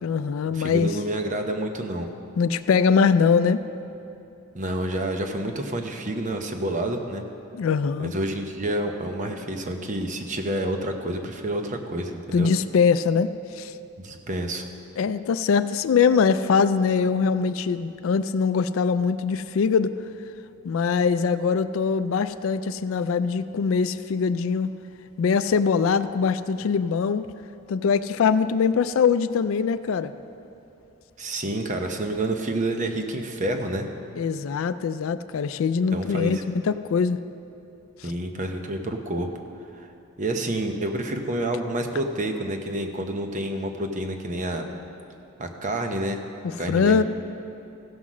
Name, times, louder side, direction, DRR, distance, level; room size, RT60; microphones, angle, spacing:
voice 1, 0.0-0.9 2.4-3.6 7.5-8.1 12.3-13.7 15.0-19.9 20.6-24.7 25.2-27.3 27.7-30.1 34.2-37.2 38.0-38.1 46.4-47.0, left 5 dB, 70° left, 12 dB, 0.3 m, -22 dB
voice 2, 0.5-2.1 4.5-7.2 8.0-12.5 14.0-14.6 31.2-33.9 35.9-36.4 38.0-39.3 39.7-39.9 40.2-44.6 45.4-46.2 46.6-47.0, right 1 dB, 35° right, 5 dB, 0.9 m, -28 dB
15.5 x 5.8 x 6.2 m, 2.9 s
head